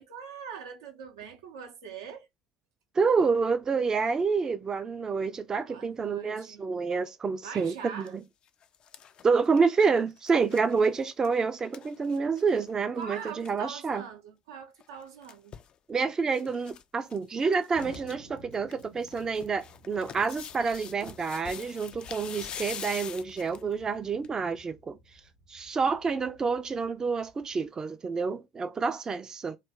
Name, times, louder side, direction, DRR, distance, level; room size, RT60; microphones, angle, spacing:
voice 1, 0.0-2.3 5.7-6.6 7.4-8.1 13.0-15.6, right 7 dB, 75° right, 0.6 m, -43 dB
voice 2, 2.9-8.2 9.2-14.0 15.9-25.0 25.5-29.6, right 5 dB, 30° right, 0.4 m, -28 dB
sound 1, 7.8-8.1 8.5-12.7 13.0-13.1 13.3-13.5 14.8-15.7 16.3-16.8 17.1-17.2 17.5-18.1 18.5-23.7 24.2-24.3, left 8 dB, 45° left, 0.3 m, -44 dB
Explosion, 17.7-27.7, equal, 90° left, 0.9 m, -55 dB
3.1 x 2.2 x 3.5 m
figure-of-eight pair, 60°, 2 cm